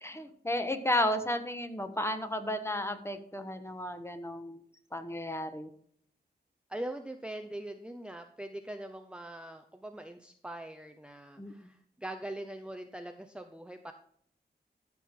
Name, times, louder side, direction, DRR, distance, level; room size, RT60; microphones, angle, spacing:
voice 1, 0.0-4.6 4.9-5.7 11.4-11.5, left 1 dB, 15° left, 8 dB, 1.2 m, -33 dB
voice 2, 6.7-13.9, right 1 dB, 5° right, 5 dB, 0.7 m, -42 dB
13.5 x 5.9 x 3.7 m, 0.64 s
wide cardioid pair, 80°, 18 cm